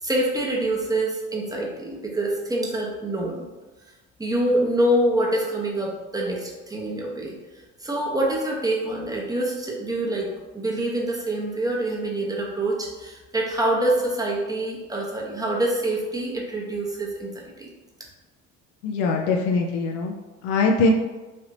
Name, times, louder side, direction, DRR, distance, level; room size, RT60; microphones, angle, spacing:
voice 1, 0.0-3.4 4.2-7.3 7.8-10.3 10.5-17.7, right 1 dB, 10° right, -2 dB, 0.8 m, -25 dB
voice 2, 18.8-20.1 20.4-20.9, left 3 dB, 65° left, 1 dB, 0.5 m, -22 dB
3.3 x 2.7 x 2.7 m, 1.2 s
figure-of-eight pair, 55°, 38 cm